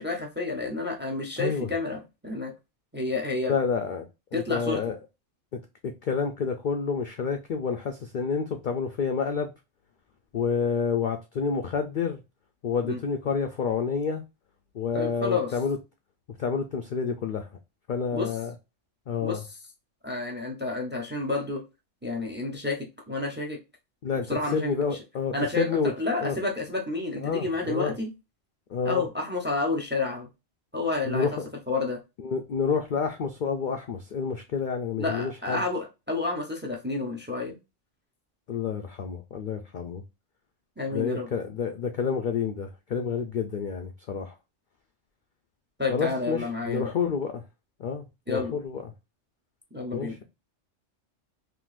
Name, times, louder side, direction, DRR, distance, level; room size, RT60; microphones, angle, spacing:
voice 1, 0.0-2.5 2.9-3.5 4.3-4.8 12.8-13.0 14.9-15.5 18.1-18.3 19.2-19.4 20.0-21.6 22.0-23.6 24.1-24.7 25.3-28.1 28.8-30.3 30.7-31.3 31.7-32.0 35.0-37.5 40.8-41.3 45.8-46.9 48.3-48.6 49.7-50.2, left 3 dB, 10° right, 0.6 m, -30 dB
voice 2, 1.4-1.7 3.5-5.0 5.5-9.5 10.3-12.2 12.6-14.2 14.7-15.8 16.4-17.5 17.9-18.5 19.1-19.4 24.0-25.9 26.2-26.3 27.2-27.9 28.7-29.0 31.0-31.5 32.2-35.6 38.5-40.0 40.9-44.3 45.9-47.4 47.8-48.8 49.9-50.2, left 6 dB, 60° left, 0.5 m, -29 dB
3.8 x 2.6 x 2.4 m
omnidirectional pair, 1.3 m